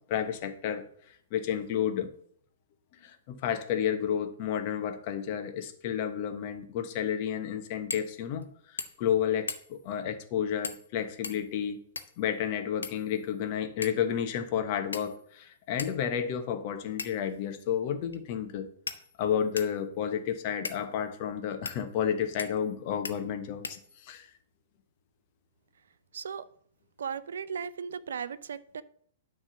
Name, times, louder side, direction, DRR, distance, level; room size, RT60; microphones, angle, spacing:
voice 1, 0.1-0.8 1.3-2.1 3.0-8.5 9.0-11.8 12.2-18.7 19.2-24.3, left 8 dB, 45° left, 1.2 m, -31 dB
sound 1, 7.9-8.1 8.4-8.5 8.8-9.1 9.5-9.9 10.6-10.9 11.2-12.2 12.8-13.4 13.8-14.1 14.9-15.3 15.8-15.9 17.0-17.3 18.1-18.2 18.9-19.8 20.6-20.8 21.6-21.8 22.4-22.7 23.0-23.2 23.6-24.2, left 4 dB, 80° left, 0.9 m, -39 dB
voice 2, 26.1-26.4 27.0-28.8, right 6 dB, 70° right, 0.5 m, -36 dB
10.0 x 3.7 x 7.0 m
figure-of-eight pair, 110°, 0 cm